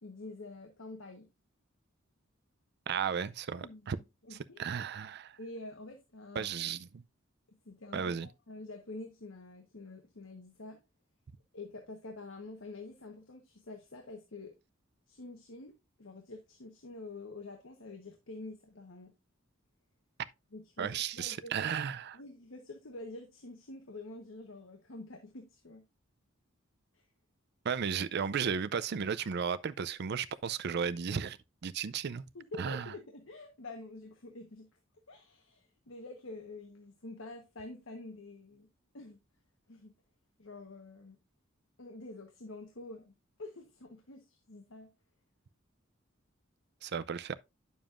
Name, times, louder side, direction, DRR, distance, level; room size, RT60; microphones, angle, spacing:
voice 1, 0.0-1.3 3.6-4.7 5.4-6.5 7.6-10.8 11.5-14.5 15.1-19.1 20.5-21.5 22.1-25.8 26.9-27.1 32.3-34.7 35.1-38.7 38.9-39.2 39.7-39.9 40.4-41.2 41.8-43.1 43.4-44.9, left 2 dB, 75° left, 1.2 m, -47 dB
voice 2, 2.9-4.0 4.3-5.4 6.3-6.9 7.9-8.3 20.8-22.2 27.6-31.4 31.6-32.2 32.6-32.9 46.8-47.3, right 7 dB, 55° right, 0.4 m, -34 dB
9.1 x 7.0 x 2.5 m
head